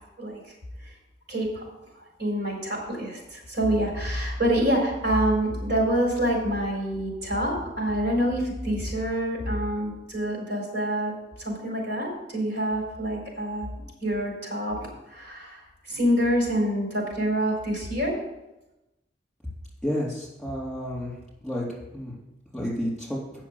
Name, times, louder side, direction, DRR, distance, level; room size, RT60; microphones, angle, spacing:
voice 1, 1.3-1.6 2.2-11.1 11.4-13.7 14.0-15.6 15.9-18.1, equal, 85° right, -2 dB, 4.2 m, -26 dB
voice 2, 19.8-21.1 21.4-21.7 21.9-22.2 22.5-23.2, equal, ahead, -6 dB, 3.9 m, -30 dB
8.2 x 6.5 x 7.2 m, 0.97 s
head